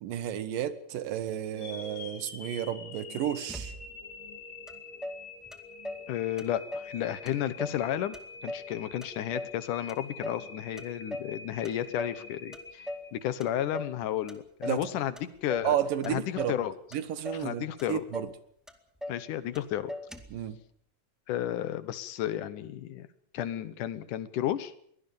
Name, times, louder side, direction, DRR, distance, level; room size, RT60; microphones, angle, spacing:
voice 1, 0.0-3.8 14.7-14.9 15.6-16.6 16.9-18.3 20.3-20.6, right 10 dB, 90° right, 13 dB, 3.1 m, -32 dB
sound 1, 1.5-13.7, left 3 dB, 40° left, 3.0 m, -46 dB
Motor vehicle (road), 3.5-4.1 4.7-4.8 5.0-6.1 6.4-7.0 7.3-7.8 8.1-9.6 9.9-10.5 10.8-11.4 11.6-12.2 12.5-13.1 13.4-14.0 14.3-14.9 15.2-15.7 16.0-16.6 16.9-17.5 17.8-17.9 18.1-18.4 18.7-19.2 19.5-19.6 19.9-20.4, left 1 dB, ahead, 1.1 m, -39 dB
voice 2, 6.1-8.2 8.4-15.8 16.0-16.7 17.4-18.0 19.1-19.9 21.3-23.1 23.3-24.7, left 11 dB, 75° left, 14 dB, 2.6 m, -32 dB
23.0 x 18.0 x 7.1 m, 0.65 s
omnidirectional pair, 3.8 m